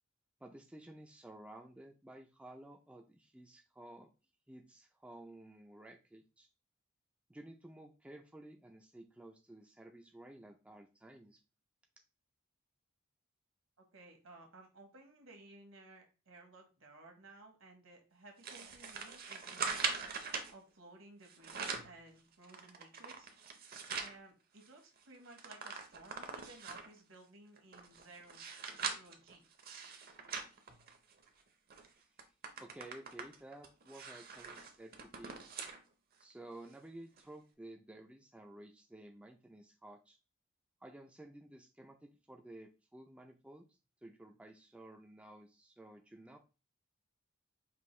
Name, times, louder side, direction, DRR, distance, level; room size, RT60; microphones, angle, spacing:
voice 1, 0.4-4.1 4.5-6.5 7.3-11.4 31.9-32.3 32.6-35.3 36.2-40.2 40.8-46.4, right 1 dB, 5° right, 2 dB, 0.3 m, -54 dB
voice 2, 13.9-20.0 20.5-23.3 24.0-28.4 28.7-29.4, right 2 dB, 70° right, 2 dB, 1.2 m, -57 dB
sound 1, 18.4-20.5 21.2-22.0 22.4-24.2 24.6-24.7 25.0-27.0 27.6-31.3 31.7-31.9 32.2-35.8 36.2-36.3 37.2-37.3, right 5 dB, 45° right, 0.6 m, -42 dB
5.3 x 2.5 x 3.1 m, 0.32 s
head